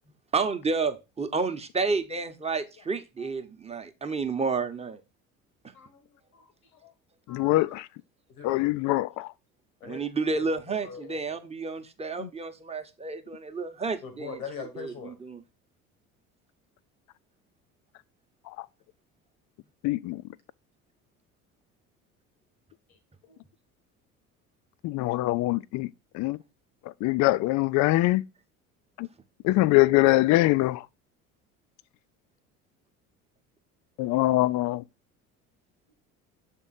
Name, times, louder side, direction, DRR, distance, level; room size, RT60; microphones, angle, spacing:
voice 1, 0.3-5.0 9.8-15.4, right 4 dB, 15° right, 0.9 m, -30 dB
voice 2, 5.7-6.9 7.3-7.8 8.3-8.7 9.8-10.0 10.3-10.5 10.8-11.4 14.0-15.1 22.9-23.4, left 6 dB, 80° left, 1.4 m, -43 dB
voice 3, 7.3-7.9 8.4-9.3 12.2-12.3 19.8-20.2 24.8-25.9 26.1-26.4 27.0-28.2 29.0-29.1 29.4-30.8 34.0-34.8, left 18 dB, 45° left, 0.4 m, -23 dB
7.2 x 3.7 x 4.1 m
hypercardioid pair, 60°, 43 cm